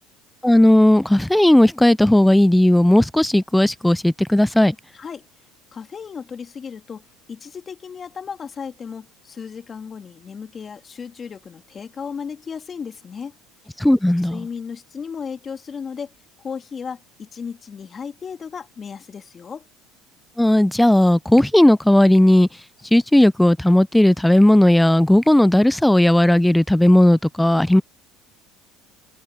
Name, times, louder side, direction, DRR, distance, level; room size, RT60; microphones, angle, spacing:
voice 1, 0.4-4.8 13.8-14.5 20.4-22.5 22.9-27.8, left 1 dB, 5° left, 0.5 m, -15 dB
voice 2, 4.9-5.2 5.7-13.3 14.3-16.1 16.4-19.6, left 6 dB, 30° left, 3.1 m, -35 dB
supercardioid pair, 100°, 0 cm